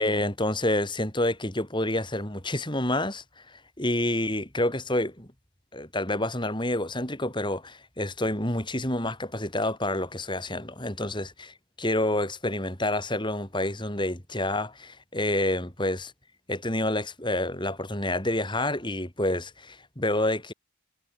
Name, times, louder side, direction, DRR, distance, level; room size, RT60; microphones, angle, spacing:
voice 1, 0.0-5.3 5.7-16.1 16.5-20.5, left 1 dB, 20° left, 4.7 m, -28 dB
head